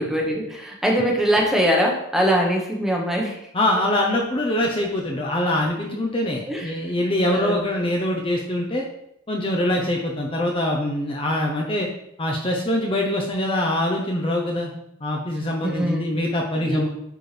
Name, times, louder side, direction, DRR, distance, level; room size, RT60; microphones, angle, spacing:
voice 1, 0.0-3.5 6.5-7.6 9.7-9.8 15.6-16.1 16.6-16.9, equal, ahead, -1 dB, 1.1 m, -23 dB
voice 2, 3.5-8.9 9.3-11.9 12.2-14.7 15.0-16.9, left 1 dB, 25° left, -1 dB, 0.8 m, -23 dB
11.0 x 4.4 x 3.3 m, 0.79 s
head